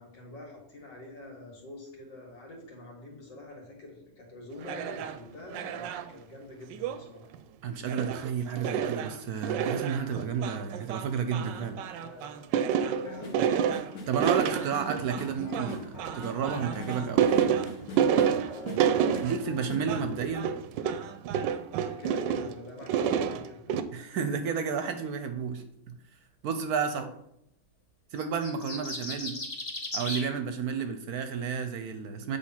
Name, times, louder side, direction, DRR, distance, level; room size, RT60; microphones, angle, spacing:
voice 1, 0.0-7.3 11.9-12.4 12.7-13.5 18.5-18.8 21.8-23.8 26.9-27.1, left 1 dB, 80° left, 0 dB, 2.6 m, -45 dB
sound 1, 4.6-5.2 5.5-6.1 6.7-7.0 7.3-7.4 7.9-8.3 8.6-22.5 22.8-23.8, right 8 dB, 90° right, 1.3 m, -29 dB
voice 2, 7.6-12.0 14.1-17.3 19.2-20.5 23.9-26.0 26.4-27.1 28.1-29.4 29.9-32.4, right 6 dB, 70° right, 8 dB, 1.0 m, -32 dB
sound 2, 13.0-19.8, left 1 dB, 60° left, 1.6 m, -42 dB
sound 3, 28.2-30.3, left 2 dB, 25° left, 1.1 m, -36 dB
8.1 x 3.5 x 5.7 m, 0.74 s
omnidirectional pair, 1.9 m